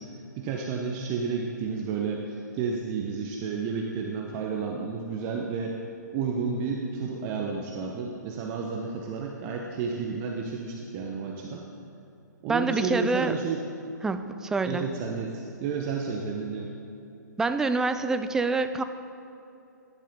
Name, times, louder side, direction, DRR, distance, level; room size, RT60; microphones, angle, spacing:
voice 1, 0.0-5.8 6.1-11.7 12.4-13.6 14.6-16.7, right 5 dB, 30° right, 0 dB, 0.9 m, -31 dB
voice 2, 12.5-13.3 14.0-14.8 17.4-18.8, right 3 dB, 5° right, 9 dB, 0.4 m, -26 dB
15.0 x 11.0 x 3.7 m, 2.8 s
figure-of-eight pair, 125°, 10 cm